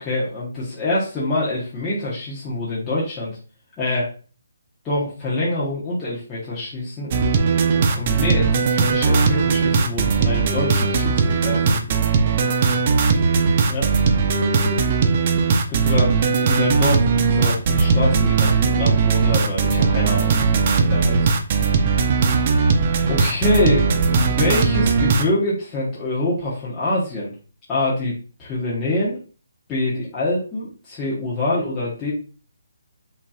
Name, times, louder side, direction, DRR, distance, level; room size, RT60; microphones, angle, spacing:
voice 1, 0.0-3.4 3.8-4.1 4.8-7.1 7.7-12.0 13.7-13.9 15.7-21.4 22.5-22.7 23.1-27.3 27.7-28.1 28.4-29.2 29.7-32.1, left 2 dB, 15° left, -9 dB, 1.0 m, -25 dB
sound 1, 7.1-25.2, right 5 dB, 35° right, 0.5 m, -18 dB
5.2 x 2.8 x 2.4 m, 0.38 s
hypercardioid pair, 165°, 0 cm